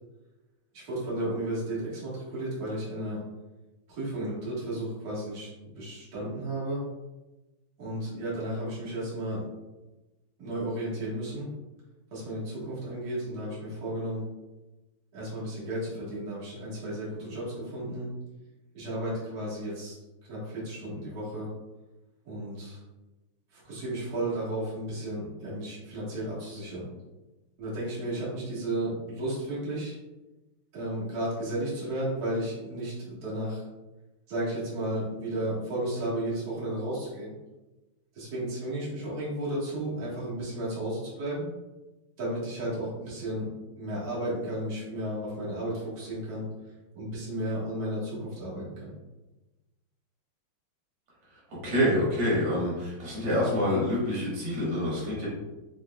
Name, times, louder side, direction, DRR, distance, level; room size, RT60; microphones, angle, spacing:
voice 1, 0.7-3.2 3.9-5.5 5.8-6.8 7.8-9.4 10.4-11.5 12.1-14.2 15.1-18.1 18.7-20.0 20.3-21.5 22.3-22.8 23.5-26.9 27.6-30.0 30.7-33.6 34.3-37.3 38.1-41.5 42.2-43.5 43.8-46.5 46.9-48.9, right 1 dB, 45° right, -8 dB, 1.8 m, -33 dB
voice 2, 51.3-55.3, left 1 dB, 80° right, -6 dB, 2.5 m, -27 dB
5.3 x 3.4 x 2.3 m, 1.1 s
omnidirectional pair, 2.4 m